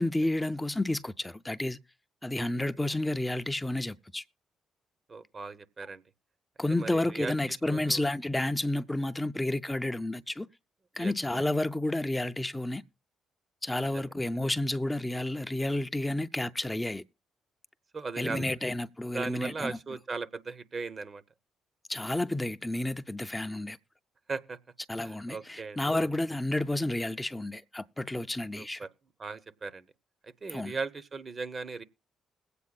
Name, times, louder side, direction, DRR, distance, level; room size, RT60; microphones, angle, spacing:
voice 1, 0.0-1.8 2.2-4.2 6.6-10.5 11.0-12.8 13.6-17.0 18.2-19.8 21.9-23.8 24.9-28.8 30.5-30.8, left 1 dB, 15° left, 0.5 m, -31 dB
voice 2, 5.1-6.0 6.7-7.4 7.7-8.0 11.0-11.1 13.9-14.1 17.9-18.5 19.1-21.2 24.3-24.6 25.0-26.1 28.6-28.9 29.2-29.8 30.2-31.8, right 4 dB, 45° right, 0.9 m, -38 dB
21.0 x 8.4 x 2.4 m
hypercardioid pair, 50°, 0 cm